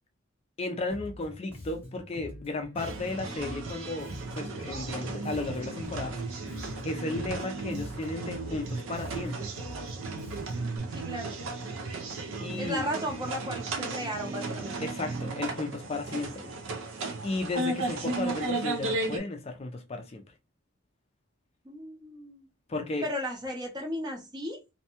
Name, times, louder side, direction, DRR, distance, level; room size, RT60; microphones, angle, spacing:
voice 1, 0.6-6.2 6.6-9.5 12.4-12.8 14.8-16.5 17.2-20.2 22.7-23.0, left 2 dB, 30° left, 0.4 m, -34 dB
Bass guitar, 0.9-10.8, left 1 dB, 10° left, 0.9 m, -45 dB
sound 1, 2.8-19.2, right 3 dB, 80° right, 0.5 m, -35 dB
voice 2, 10.9-11.4 12.6-14.8 21.6-22.5 23.0-24.6, equal, 20° right, 0.6 m, -35 dB
2.6 x 2.1 x 2.8 m
head